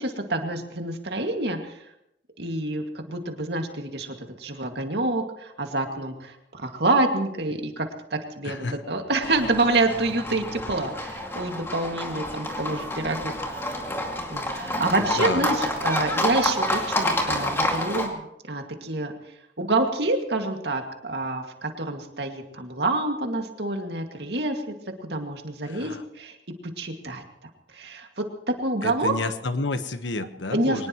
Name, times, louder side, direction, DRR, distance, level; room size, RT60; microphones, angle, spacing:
voice 1, 0.0-1.8 2.4-13.6 14.3-19.1 19.6-24.7 25.0-26.4 26.6-27.2 27.7-29.1 30.5-30.9, right 2 dB, 65° right, 4 dB, 2.2 m, -27 dB
voice 2, 8.4-8.8 14.6-15.5 25.6-26.0 28.8-30.9, left 2 dB, 90° left, 9 dB, 1.3 m, -31 dB
Livestock farm animals working animals, 9.2-18.1, left 1 dB, 15° left, 2.3 m, -28 dB
23.5 x 19.5 x 3.1 m, 0.80 s
head